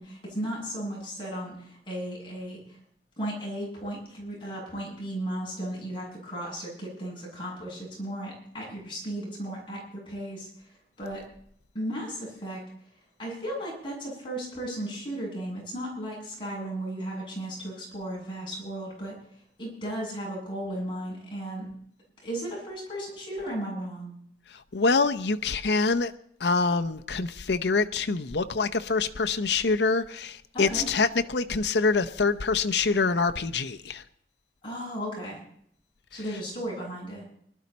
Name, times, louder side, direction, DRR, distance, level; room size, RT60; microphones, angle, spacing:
voice 1, 0.0-2.6 3.2-10.5 11.0-11.2 11.7-12.6 13.2-19.1 19.6-21.7 22.2-24.1 30.5-30.8 34.6-35.4 36.1-37.3, right 1 dB, 30° left, -4 dB, 7.8 m, -35 dB
voice 2, 24.5-26.1 26.4-34.0, left 4 dB, 75° left, 8 dB, 0.8 m, -25 dB
21.0 x 12.5 x 4.2 m, 0.67 s
head